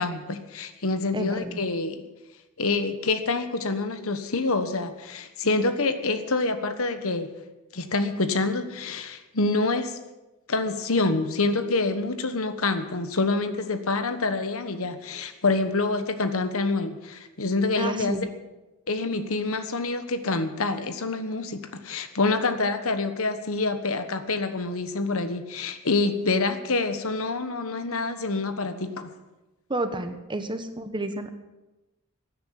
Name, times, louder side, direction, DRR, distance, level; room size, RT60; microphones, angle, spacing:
voice 1, 0.0-2.0 2.6-7.3 7.7-10.0 10.5-18.2 18.9-29.1, left 3 dB, 70° left, 9 dB, 1.3 m, -26 dB
voice 2, 1.1-1.6 17.8-18.4 29.7-31.3, right 2 dB, 20° right, 8 dB, 1.2 m, -31 dB
16.5 x 9.6 x 7.6 m, 1.1 s
head